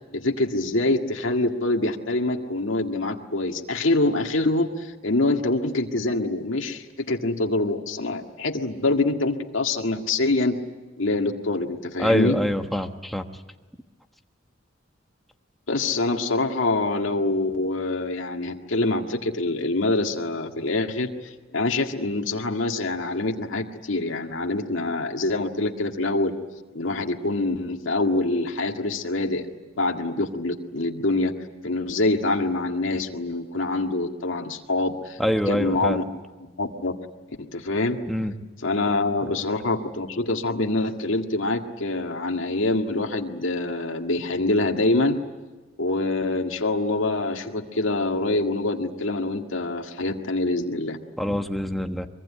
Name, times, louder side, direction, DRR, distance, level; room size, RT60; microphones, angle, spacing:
voice 1, 0.1-10.6 11.0-12.4 15.7-21.1 21.5-26.3 26.7-29.5 29.8-31.3 31.6-35.2 35.5-36.0 36.6-36.9 37.4-38.0 38.6-45.2 45.8-51.0, left 2 dB, 80° left, 2 dB, 1.9 m, -25 dB
voice 2, 12.0-13.3 35.2-36.0 38.1-38.3 51.2-52.1, equal, ahead, 5 dB, 1.2 m, -25 dB
24.0 x 23.5 x 10.0 m, 1.2 s
head